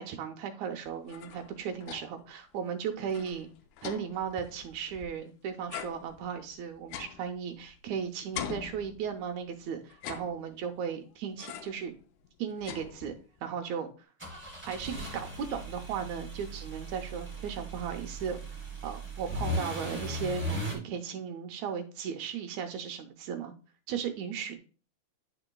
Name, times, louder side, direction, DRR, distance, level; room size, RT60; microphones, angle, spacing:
voice 1, 0.0-3.5 3.8-11.9 12.4-13.1 13.4-13.9 14.7-23.5 23.9-24.6, right 7 dB, 80° right, 5 dB, 2.1 m, -36 dB
sound 1, 0.9-2.3 2.7-2.8 3.0-5.3 5.7-7.9 8.3-9.4 9.9-10.8 11.4-11.9 12.2-13.4, left 9 dB, 85° left, 2.0 m, -43 dB
sound 2, 14.2-20.7, equal, 5° right, 0.9 m, -37 dB
9.5 x 4.9 x 2.3 m, 0.37 s
omnidirectional pair, 3.4 m